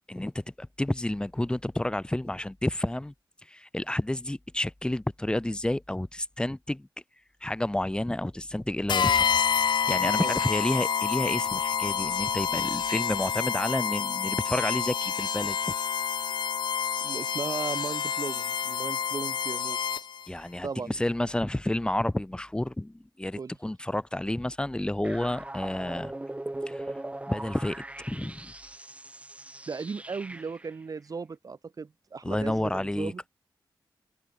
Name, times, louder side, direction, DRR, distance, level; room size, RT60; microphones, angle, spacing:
voice 1, 0.1-3.1 3.5-6.9 7.4-9.3 9.6-15.7 20.3-26.1 26.7-26.8 27.3-28.5 32.2-33.3, left 1 dB, 10° left, 2.1 m, -30 dB
sound 1, 8.9-20.3, left 7 dB, 65° left, 0.5 m, -28 dB
voice 2, 17.0-20.1 20.6-20.9 23.3-23.6 29.7-33.2, right 5 dB, 45° right, 1.4 m, -36 dB
sound 2, 25.0-30.7, right 1 dB, 15° right, 5.4 m, -39 dB
wide cardioid pair, 140°, 8 cm